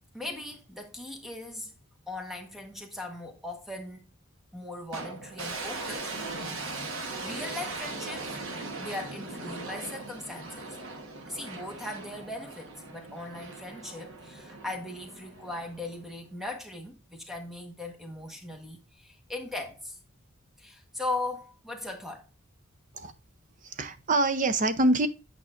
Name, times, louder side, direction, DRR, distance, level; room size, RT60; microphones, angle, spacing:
voice 1, 0.1-1.7 2.1-4.1 4.5-6.1 7.2-8.3 8.8-10.8 11.3-20.0 20.6-22.2, left 2 dB, ahead, 1.2 m, -39 dB
sound 1, 4.9-16.1, right 3 dB, 60° right, 1.2 m, -39 dB
voice 2, 23.6-25.1, right 2 dB, 35° right, 0.5 m, -25 dB
8.6 x 5.5 x 2.5 m
head